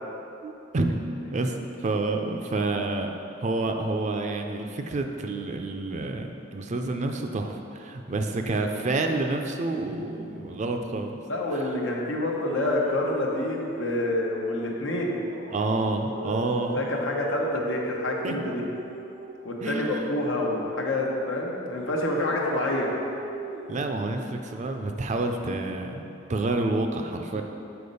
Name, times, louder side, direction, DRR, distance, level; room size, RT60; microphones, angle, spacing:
voice 1, 0.4-1.0 1.3-11.2 11.5-11.6 15.5-16.8 18.2-18.3 19.6-20.2 23.7-26.0 26.3-27.4, right 2 dB, 40° right, 4 dB, 0.4 m, -29 dB
voice 2, 11.2-15.2 16.7-18.6 19.4-23.0 27.3-27.4, left 1 dB, 90° left, -1 dB, 0.9 m, -27 dB
sound 1, 12.3-14.4 15.2-19.5 21.7-24.0, right 2 dB, 75° right, 0.7 m, -37 dB
6.8 x 4.2 x 5.4 m, 2.8 s
head